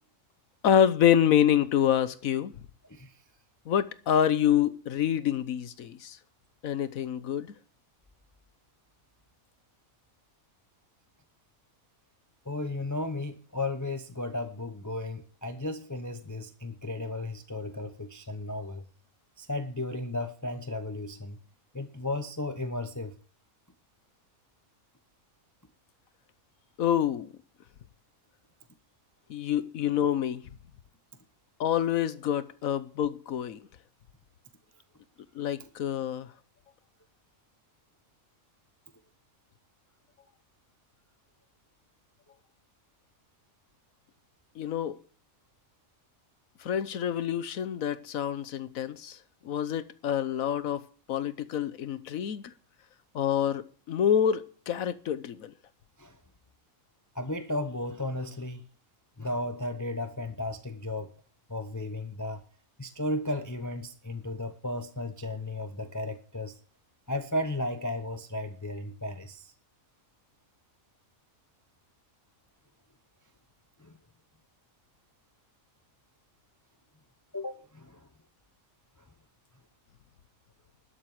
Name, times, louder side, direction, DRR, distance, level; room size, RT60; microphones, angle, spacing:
voice 1, 0.6-2.5 3.7-6.2 6.6-7.5 26.8-27.3 29.3-30.4 31.6-33.6 35.3-36.3 44.6-44.9 46.6-49.2 49.4-50.8 51.1-52.5 53.1-55.5, left 9 dB, 80° left, 1.3 m, -27 dB
voice 2, 12.5-18.9 19.4-21.4 21.7-23.2 56.0-56.2 57.1-58.6 59.2-61.1 61.5-62.4 62.8-66.6 67.1-69.5 73.8-73.9 77.3-78.1, left 1 dB, 15° left, 0.7 m, -34 dB
12.5 x 7.8 x 7.9 m
omnidirectional pair, 1.5 m